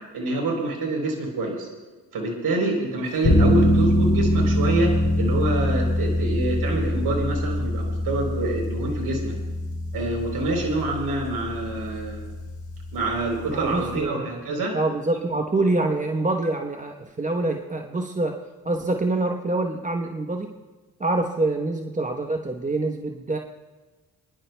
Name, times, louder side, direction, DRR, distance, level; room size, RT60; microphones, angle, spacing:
voice 1, 0.1-1.7 2.1-9.3 9.9-12.3 12.9-14.7, right 2 dB, 70° right, 0 dB, 3.8 m, -26 dB
sound 1, 3.2-14.0, left 1 dB, 55° left, 3.4 m, -24 dB
voice 2, 13.5-14.3 14.7-18.4 18.6-20.5 21.0-23.4, right 2 dB, 20° right, 3 dB, 1.0 m, -25 dB
29.0 x 11.0 x 2.3 m, 1.3 s
cardioid pair, 70°, 39 cm